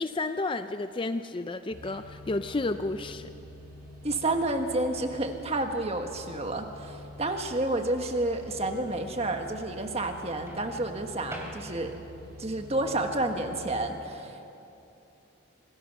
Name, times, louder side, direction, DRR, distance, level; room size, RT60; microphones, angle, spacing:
voice 1, 0.0-3.3, left 2 dB, 25° left, 9 dB, 0.4 m, -31 dB
sound 1, 1.7-13.7, equal, 45° right, 5.3 m, -47 dB
Microwave oven, 1.8-2.4 4.4-4.7 10.5-12.1, right 1 dB, 15° right, 3.0 m, -45 dB
voice 2, 4.0-12.0 12.4-14.5, right 2 dB, 30° right, 5 dB, 1.5 m, -30 dB
26.0 x 20.0 x 6.1 m, 2.8 s
head